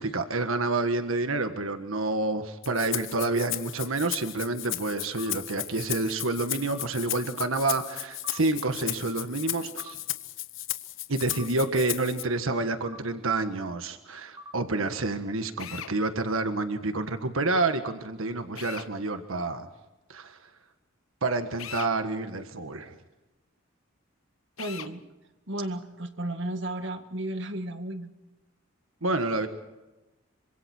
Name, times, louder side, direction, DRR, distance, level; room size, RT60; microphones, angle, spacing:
voice 1, 0.0-10.0 11.1-19.7 20.1-20.4 21.2-23.0 29.0-29.5, right 2 dB, 90° right, 8 dB, 1.6 m, -28 dB
Rattle (instrument), 2.6-12.2, left 15 dB, 65° left, 1.0 m, -35 dB
sound 1, 5.2-5.4 6.7-6.9 8.2-8.4 9.8-10.0 11.3-11.5 12.8-13.0 14.4-14.6, left 1 dB, 20° right, 1.2 m, -45 dB
Drill, 15.6-15.9 18.5-18.9 21.6-21.9 24.6-24.9, left 9 dB, 90° left, 1.2 m, -39 dB
voice 2, 24.6-25.0 25.5-28.1, right 1 dB, 60° right, 7 dB, 1.9 m, -33 dB
27.0 x 25.5 x 4.5 m, 1.1 s
head